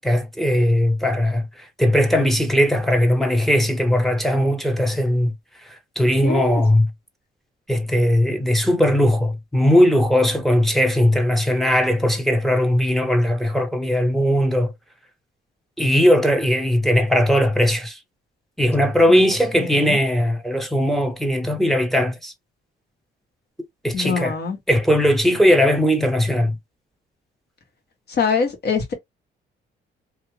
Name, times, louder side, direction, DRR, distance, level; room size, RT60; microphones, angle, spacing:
voice 1, 0.0-5.3 5.7-6.9 7.7-14.7 15.8-18.0 18.6-22.3 23.8-24.4 24.7-26.6, equal, ahead, 0.8 m, -19 dB
voice 2, 6.2-6.6 19.1-19.2 19.5-20.0 23.9-24.6 28.1-28.9, left 5 dB, 55° left, 1.5 m, -24 dB
2.8 x 2.5 x 3.2 m
cardioid pair, 90°, 20 cm